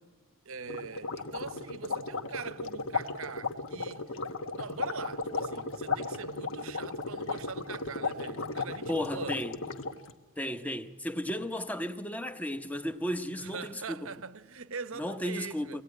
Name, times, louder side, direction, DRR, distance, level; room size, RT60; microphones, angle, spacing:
voice 1, 0.5-4.2 4.5-9.4 13.4-15.8, right 5 dB, 70° right, 0.9 m, -42 dB
sound 1, 0.7-10.1, left 3 dB, 65° left, 1.3 m, -35 dB
voice 2, 8.9-9.6 10.4-14.0 14.9-15.8, equal, 5° left, 0.8 m, -34 dB
23.5 x 18.0 x 9.7 m
head